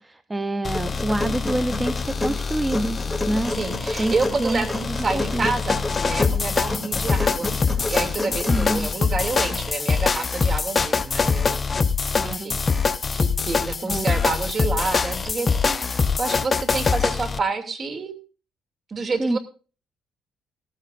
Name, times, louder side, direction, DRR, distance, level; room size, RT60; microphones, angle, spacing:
voice 1, 0.0-3.5 4.0-4.1 4.4-5.5 8.5-8.9 12.1-12.6 13.8-14.1 19.2-19.4, right 1 dB, 15° right, 11 dB, 0.7 m, -27 dB
sound 1, 0.6-17.4, left 5 dB, 30° left, 0.7 m, -24 dB
sound 2, 0.7-8.7, left 2 dB, 5° left, 2.7 m, -30 dB
voice 2, 3.5-11.6 12.2-12.6 13.1-18.1 18.9-19.4, right 3 dB, 35° right, 6 dB, 2.7 m, -28 dB
17.5 x 14.5 x 2.6 m, 0.36 s
cardioid pair, 105°, 0 cm